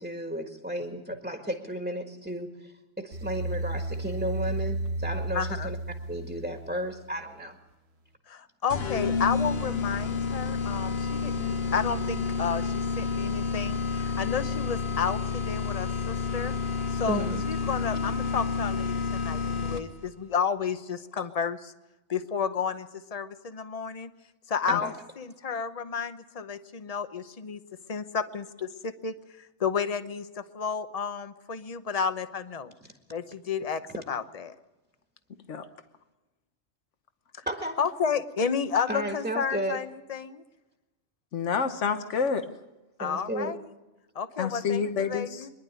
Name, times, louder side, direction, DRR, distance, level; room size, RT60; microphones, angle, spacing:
voice 1, 0.0-5.8 6.1-7.6 17.1-17.4 24.7-24.9 37.4-37.8 38.9-39.8 43.0-43.5, right 1 dB, 5° right, 1.6 m, -33 dB
sound 1, 3.1-7.2, right 1 dB, 65° right, 1.5 m, -33 dB
voice 2, 5.3-5.7 8.3-16.6 16.9-21.7 22.1-24.1 24.5-27.6 27.9-32.7 33.1-33.8 34.1-34.6 37.8-40.4 43.0-43.6 44.1-45.5, left 6 dB, 35° left, 0.9 m, -32 dB
sound 2, 8.7-20.1, left 5 dB, 60° left, 1.4 m, -30 dB
voice 3, 41.3-42.5 44.4-45.5, left 6 dB, 90° left, 1.4 m, -28 dB
24.0 x 11.0 x 9.6 m
omnidirectional pair, 1.2 m